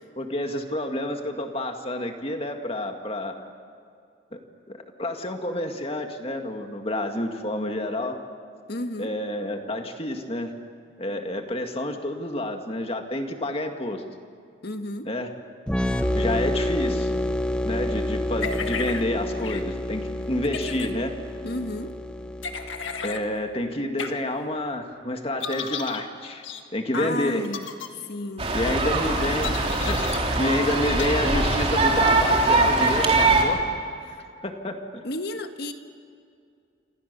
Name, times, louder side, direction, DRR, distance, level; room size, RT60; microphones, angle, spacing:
voice 1, 0.2-3.4 4.3-4.4 4.7-8.2 9.0-10.5 11.0-14.0 15.0-15.3 16.1-17.1 17.6-21.1 23.0-26.4 26.7-27.5 28.5-29.6 29.9-33.6 34.1-34.2 34.4-35.0, left 1 dB, 30° left, 4 dB, 2.0 m, -29 dB
voice 2, 8.7-9.1 14.6-15.1 21.4-21.9 26.9-27.7 28.1-28.5 35.0-35.7, left 2 dB, 55° left, 7 dB, 1.5 m, -32 dB
sound 1, 15.7-23.2, left 1 dB, 5° left, 0.9 m, -28 dB
sound 2, 18.4-19.0 19.4-19.6 20.4-20.9 22.4-23.2 24.0-24.1 25.4-26.0 26.4-26.6 27.4-27.9 29.4-30.2 31.0-31.1, left 6 dB, 75° left, 1.7 m, -33 dB
sound 3, 28.4-33.4, right 2 dB, 30° right, 3.3 m, -22 dB
27.5 x 26.5 x 6.9 m, 2.3 s
head